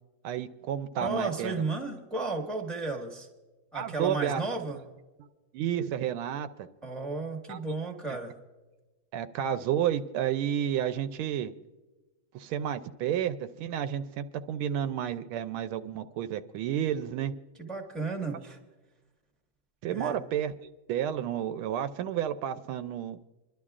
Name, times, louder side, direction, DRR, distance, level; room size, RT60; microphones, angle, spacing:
voice 1, 0.2-1.6 3.7-4.4 5.5-6.5 7.5-7.6 8.1-8.2 9.1-11.5 12.3-17.3 19.8-20.5 20.9-23.2, right 10 dB, 85° right, 11 dB, 1.4 m, -31 dB
voice 2, 1.0-3.3 3.7-4.8 6.8-8.3 17.6-18.6 19.9-20.2, right 3 dB, ahead, 2 dB, 1.1 m, -33 dB
26.5 x 11.5 x 2.4 m, 1.2 s
omnidirectional pair, 2.3 m